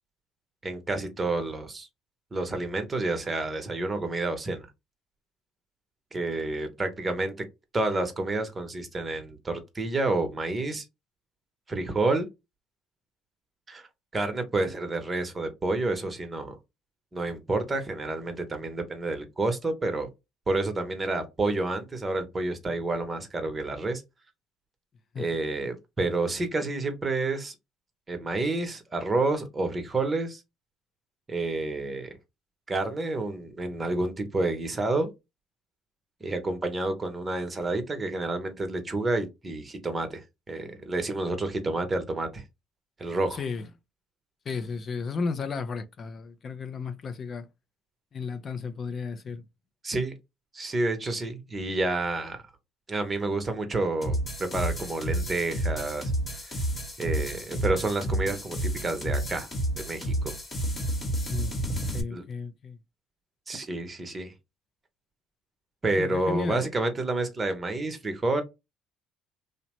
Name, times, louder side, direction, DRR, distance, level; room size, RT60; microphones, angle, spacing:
voice 1, 0.6-1.9 2.3-4.7 6.1-7.3 7.7-10.8 11.7-12.3 13.7-13.9 14.1-16.6 17.1-20.1 20.5-24.0 25.2-27.5 28.1-30.4 31.3-32.2 32.7-35.1 36.2-42.4 43.0-43.4 49.8-50.1 50.5-52.4 52.9-56.1 56.4-56.5 57.0-59.5 59.8-60.3 62.1-62.2 63.5-64.3 65.8-68.4, right 2 dB, 25° right, 0.8 m, -29 dB
voice 2, 43.3-43.7 44.5-47.5 48.1-49.4 61.3-62.8 66.0-66.6, left 4 dB, 40° left, 0.4 m, -34 dB
sound 1, 54.0-62.0, right 1 dB, 25° left, 1.0 m, -30 dB
2.8 x 2.0 x 2.9 m
supercardioid pair, 90°, 0 cm